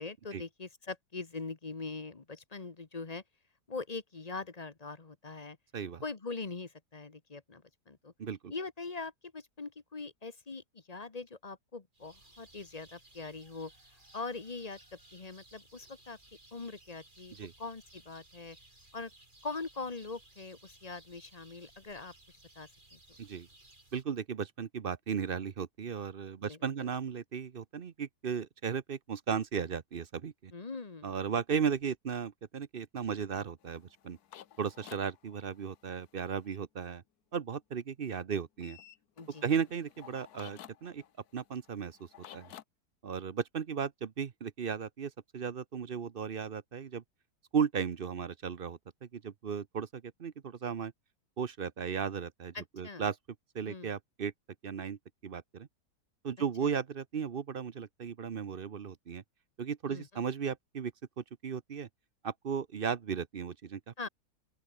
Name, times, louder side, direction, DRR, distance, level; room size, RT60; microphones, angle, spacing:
voice 1, 0.0-3.2 3.7-5.6 6.0-8.1 8.5-13.7 14.1-14.8 15.1-16.2 16.5-18.6 18.9-19.1 19.4-23.0 26.4-26.6 30.5-31.1 39.2-39.5 52.5-53.0 53.7-53.9 56.6-56.8 59.9-60.1 64.0-64.1, left 3 dB, 25° left, 1.2 m, -42 dB
voice 2, 8.2-8.5 17.4-17.5 23.2-23.5 23.9-30.5 31.0-34.2 34.6-37.0 37.3-38.8 39.4-41.0 41.3-42.1 42.3-42.5 43.0-47.0 47.5-50.9 51.4-53.2 53.5-54.3 54.6-55.7 56.2-59.2 59.6-61.9 62.2-64.1, right 7 dB, 45° right, 0.8 m, -35 dB
sound 1, 11.9-24.0, right 2 dB, 30° right, 4.4 m, -59 dB
sound 2, 33.6-36.6 38.6-42.6, left 11 dB, 70° left, 1.4 m, -54 dB
open air
omnidirectional pair, 1.8 m